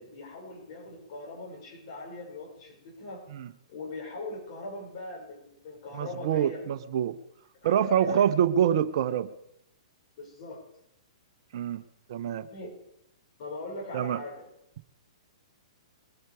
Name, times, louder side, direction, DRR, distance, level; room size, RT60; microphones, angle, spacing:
voice 1, 0.0-3.2 3.7-6.6 7.6-8.2 10.2-10.6 12.5-12.7 13.4-14.5, left 2 dB, 50° left, -1 dB, 5.7 m, -41 dB
voice 2, 5.9-7.2 7.6-9.3 11.5-11.8 12.1-12.5 13.9-14.2, right 9 dB, 55° right, 12 dB, 0.9 m, -26 dB
22.0 x 10.0 x 4.8 m, 0.79 s
figure-of-eight pair, 115°, 3 cm